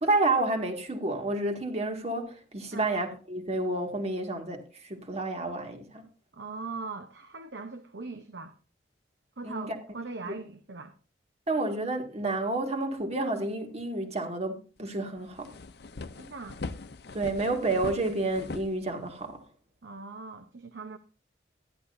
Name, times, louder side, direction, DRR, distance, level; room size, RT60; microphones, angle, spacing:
voice 1, 0.0-6.0 9.4-9.8 10.2-10.3 11.5-15.5 17.1-19.4, right 2 dB, 40° right, 2.0 m, -30 dB
voice 2, 6.3-8.5 9.4-10.9 16.1-16.6 19.8-21.0, right 3 dB, 80° right, 1.0 m, -40 dB
sound 1, 14.8-14.9 15.2-19.4, left 3 dB, 65° left, 0.7 m, -41 dB
13.5 x 11.0 x 2.7 m
head